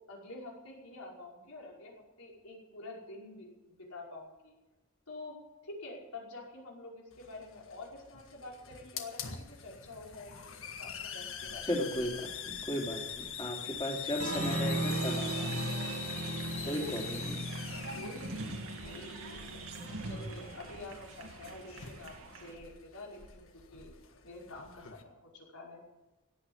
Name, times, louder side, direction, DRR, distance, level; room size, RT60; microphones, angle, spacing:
voice 1, 0.1-4.5 5.1-5.4 5.6-10.5 10.8-11.7 16.6-17.0 18.0-18.4 18.8-19.3 19.7-23.5 23.7-23.9 24.2-25.8, left 2 dB, 85° left, -2 dB, 5.5 m, -47 dB
Hiss, 7.1-25.0, left 7 dB, 65° left, 1.6 m, -44 dB
voice 2, 11.6-15.7 16.7-17.4, left 1 dB, 20° left, 0 dB, 3.2 m, -36 dB
Applause, 14.2-22.5, right 2 dB, 65° right, 2.2 m, -38 dB
17.0 x 9.0 x 8.7 m, 1.0 s
head